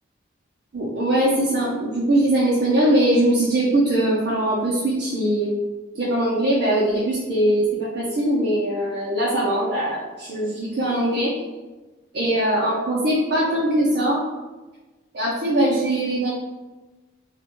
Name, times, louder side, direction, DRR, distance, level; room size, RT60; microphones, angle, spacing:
voice 1, 0.7-5.5 5.9-11.3 12.1-14.2 15.1-16.3, right 1 dB, 55° right, -6 dB, 0.4 m, -21 dB
2.2 x 2.1 x 2.9 m, 1.2 s
head